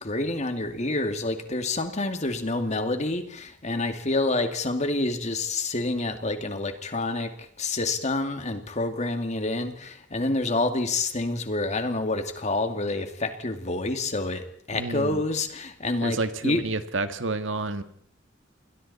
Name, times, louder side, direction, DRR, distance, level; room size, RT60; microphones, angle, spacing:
voice 1, 0.0-7.3 7.6-16.2 16.4-16.6, left 2 dB, 35° left, 7 dB, 2.3 m, -28 dB
voice 2, 14.7-15.2 16.0-17.8, right 2 dB, 75° right, 9 dB, 1.7 m, -29 dB
28.0 x 22.0 x 4.2 m, 0.62 s
head